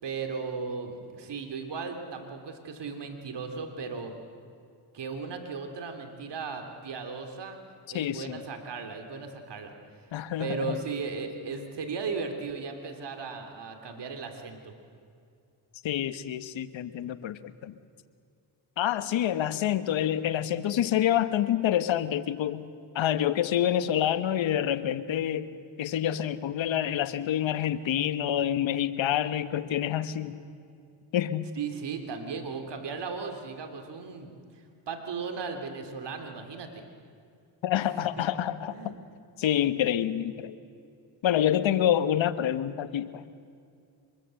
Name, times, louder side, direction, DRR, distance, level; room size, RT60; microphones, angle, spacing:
voice 1, 0.0-4.1 4.9-7.6 7.9-9.7 10.1-14.7 31.6-36.8 38.0-38.3 38.7-39.0, right 5 dB, 60° right, 5 dB, 3.4 m, -36 dB
voice 2, 7.9-8.4 10.1-10.8 15.8-17.8 18.8-22.6 22.9-30.3 31.1-31.4 37.6-38.8 39.4-40.5 41.2-43.2, left 11 dB, 70° left, 12 dB, 1.3 m, -27 dB
25.0 x 22.0 x 7.8 m, 2.4 s
cardioid pair, 65°, 47 cm